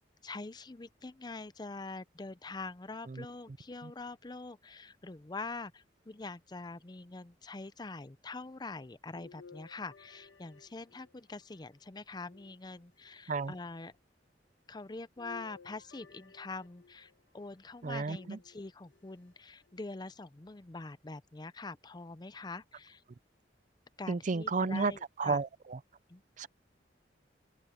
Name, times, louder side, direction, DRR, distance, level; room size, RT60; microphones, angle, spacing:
voice 1, 0.2-13.9 14.7-23.0 24.0-25.4 26.1-26.2, left 3 dB, 25° left, 0.6 m, -44 dB
sound 1, 9.2-11.4 12.2-13.2 15.2-17.2 18.2-19.0 19.7-19.8 21.2-21.3, left 5 dB, 85° left, 1.6 m, -56 dB
voice 2, 17.8-18.4 24.1-24.9 25.2-25.8 26.4-26.5, right 4 dB, 45° right, 0.5 m, -32 dB
open air
head